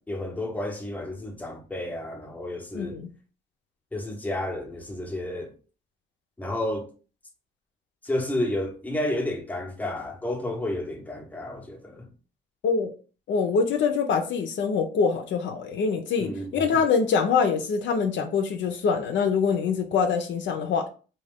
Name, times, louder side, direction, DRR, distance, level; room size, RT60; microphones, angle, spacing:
voice 1, 0.0-3.0 3.9-5.5 6.4-6.9 8.0-12.1 16.2-16.8, left 1 dB, 10° left, 0.7 m, -31 dB
voice 2, 2.7-3.1 12.6-12.9 13.3-20.9, left 5 dB, 70° left, 0.5 m, -24 dB
2.3 x 2.3 x 3.4 m
cardioid pair, 90°, 20 cm